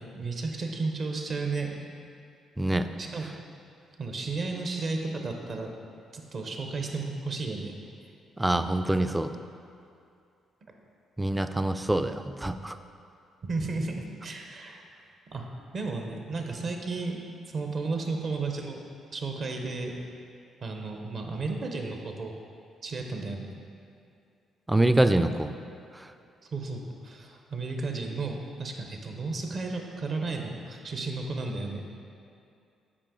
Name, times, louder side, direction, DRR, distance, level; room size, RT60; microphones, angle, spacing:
voice 1, 0.1-1.9 3.0-3.2 4.0-5.7 6.1-7.7 10.6-10.7 13.4-14.8 15.3-17.2 17.5-18.8 19.1-20.0 20.6-22.3 22.8-23.5 26.4-31.8, right 3 dB, 50° right, 3 dB, 0.9 m, -33 dB
voice 2, 2.6-2.9 8.4-9.3 11.2-12.8 24.7-25.5 26.0-26.1, right 1 dB, 10° right, 9 dB, 0.3 m, -25 dB
8.5 x 4.8 x 3.8 m, 2.5 s
cardioid pair, 90°, 0 cm